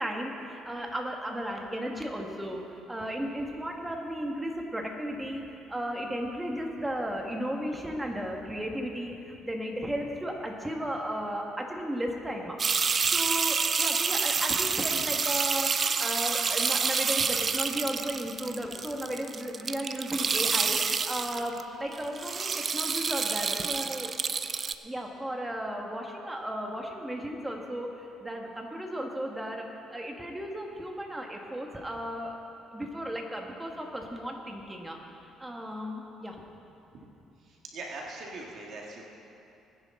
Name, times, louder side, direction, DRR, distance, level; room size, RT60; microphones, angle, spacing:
voice 1, 0.0-2.6 2.9-12.6 13.1-24.1 24.8-29.6 29.9-32.4 32.7-36.4, equal, 10° right, 1 dB, 1.6 m, -35 dB
sound 1, 12.6-21.6 21.9-24.7, right 5 dB, 35° right, 0.4 m, -28 dB
voice 2, 37.4-39.1, right 2 dB, 60° right, -1 dB, 1.7 m, -41 dB
19.5 x 10.0 x 3.8 m, 2.8 s
cardioid pair, 110°, 0 cm